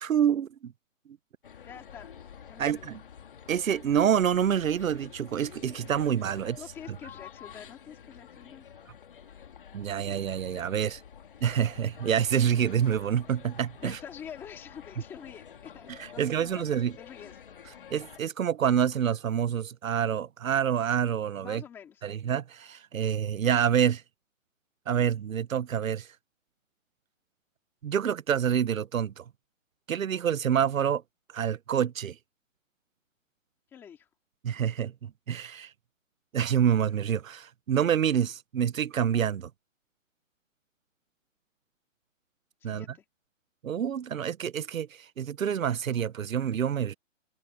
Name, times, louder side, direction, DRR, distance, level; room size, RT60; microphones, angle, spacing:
voice 1, 0.0-0.7 2.6-3.0 3.5-6.6 9.7-11.0 11.4-14.0 16.0-16.9 17.9-21.6 22.0-24.0 24.9-26.1 27.8-29.2 29.9-31.0 31.3-32.2 34.4-35.7 36.3-39.5 42.6-42.8 43.6-46.9, right 8 dB, 85° right, 0.9 m, -27 dB
sound 1, 1.4-18.2, left 8 dB, 40° left, 2.1 m, -49 dB
voice 2, 1.6-2.1 2.5-2.9 6.5-8.7 13.8-16.7 17.0-17.4 21.4-22.1 33.7-34.1 42.6-43.0, left 8 dB, 5° left, 2.2 m, -46 dB
hypercardioid pair, 180°, 39 cm